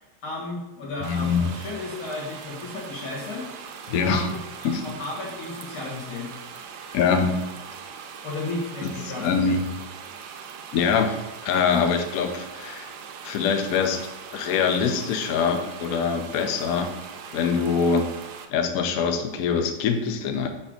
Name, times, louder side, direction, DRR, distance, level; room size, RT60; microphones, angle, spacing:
voice 1, 0.2-3.5 4.0-6.3 8.2-9.6, left 3 dB, 90° left, -3 dB, 2.6 m, -34 dB
voice 2, 1.0-1.5 3.9-4.3 4.6-4.8 6.9-7.4 8.8-9.8 10.7-11.2 11.4-12.9 13.2-14.0 14.3-16.9 17.3-18.1 18.5-20.5, left 6 dB, 70° left, 6 dB, 0.8 m, -24 dB
sound 1, 1.0-18.4, right 6 dB, 75° right, 0.9 m, -41 dB
4.8 x 4.3 x 5.0 m, 1.0 s
omnidirectional pair, 2.3 m